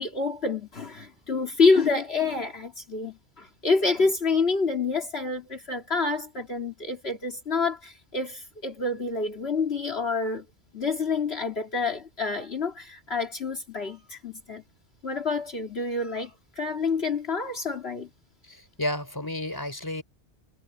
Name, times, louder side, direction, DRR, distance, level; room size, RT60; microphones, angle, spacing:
voice 1, 0.0-10.5 10.7-14.6 15.0-18.1, left 4 dB, 60° left, 2.7 m, -27 dB
voice 2, 18.4-20.0, left 1 dB, 20° left, 4.0 m, -32 dB
omnidirectional pair, 1.2 m